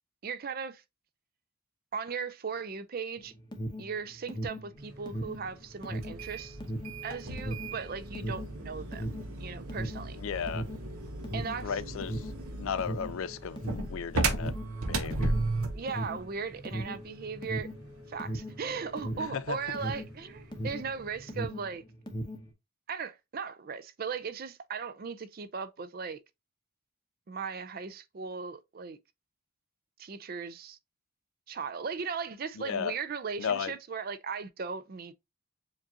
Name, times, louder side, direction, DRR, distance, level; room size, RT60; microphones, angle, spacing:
voice 1, 0.2-0.8 1.9-3.3 3.8-6.6 7.0-9.1 9.4-10.2 11.3-11.8 15.7-17.7 18.1-21.8 22.9-26.2 27.3-29.0 30.0-30.8 31.5-35.1, right 5 dB, 45° right, 0.4 m, -37 dB
Alarm, 3.2-21.0 21.2-22.5, equal, 20° left, 0.7 m, -37 dB
sound 1, 4.7-21.4, left 1 dB, 65° right, 3.3 m, -51 dB
sound 2, 6.0-15.9, right 2 dB, 85° right, 0.8 m, -35 dB
voice 2, 10.2-10.7 11.6-12.3 12.6-14.5 14.9-15.3 19.2-19.6 32.6-32.9 33.4-33.7, left 7 dB, 70° left, 0.4 m, -34 dB
7.2 x 2.5 x 2.7 m
head